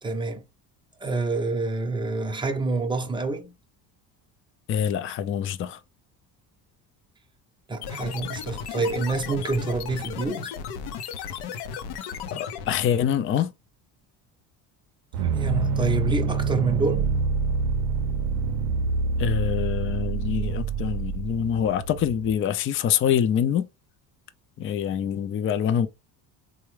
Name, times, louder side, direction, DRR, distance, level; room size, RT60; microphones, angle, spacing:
voice 1, 0.0-0.4 1.0-3.5 7.7-10.5 15.2-17.1, right 3 dB, 10° right, 0.6 m, -27 dB
voice 2, 4.7-5.8 12.3-13.5 19.2-23.7 24.6-25.9, left 9 dB, 35° left, 0.4 m, -25 dB
sound 1, 7.8-13.0, left 7 dB, 70° left, 0.6 m, -35 dB
sound 2, 15.1-22.3, right 4 dB, 70° right, 0.5 m, -26 dB
3.4 x 2.1 x 3.1 m
supercardioid pair, 95°, 41 cm